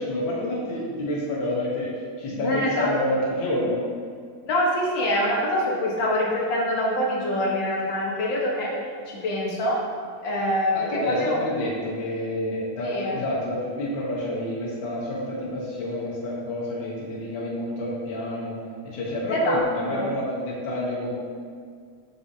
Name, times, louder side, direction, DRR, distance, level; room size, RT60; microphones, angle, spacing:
voice 1, 0.0-3.8 10.7-18.6 18.8-21.1, left 1 dB, 85° left, -5 dB, 1.0 m, -28 dB
voice 2, 2.3-3.2 4.5-8.7 9.1-9.8 10.2-11.4 12.8-13.2 19.3-19.6 19.9-20.1, left 1 dB, 60° left, -4 dB, 1.2 m, -25 dB
6.7 x 6.2 x 2.7 m, 2.1 s
omnidirectional pair, 3.5 m